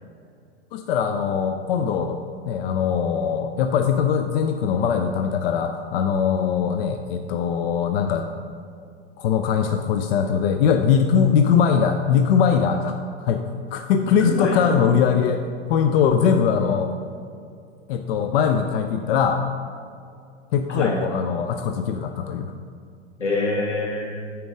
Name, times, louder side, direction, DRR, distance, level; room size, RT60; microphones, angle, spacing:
voice 1, 0.7-8.3 9.2-13.4 13.7-16.9 17.9-19.4 20.5-22.5, left 7 dB, 55° left, 6 dB, 0.6 m, -21 dB
voice 2, 14.0-14.8 20.7-21.0 23.2-24.2, left 2 dB, 90° left, -3 dB, 1.9 m, -26 dB
8.9 x 4.6 x 4.9 m, 2.4 s
hypercardioid pair, 95°, 35 cm